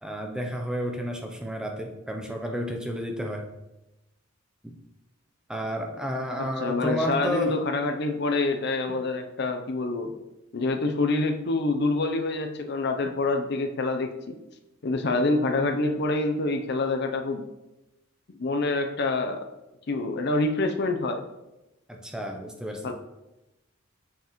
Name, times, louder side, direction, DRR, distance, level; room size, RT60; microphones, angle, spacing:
voice 1, 0.0-3.5 4.6-4.7 5.5-7.6 21.9-22.9, equal, 5° right, 2 dB, 0.5 m, -31 dB
voice 2, 6.4-10.1 10.5-14.4 14.8-17.4 18.3-19.5 19.9-21.2 22.8-22.9, left 2 dB, 55° left, 6 dB, 0.5 m, -26 dB
7.0 x 5.6 x 3.0 m, 0.98 s
head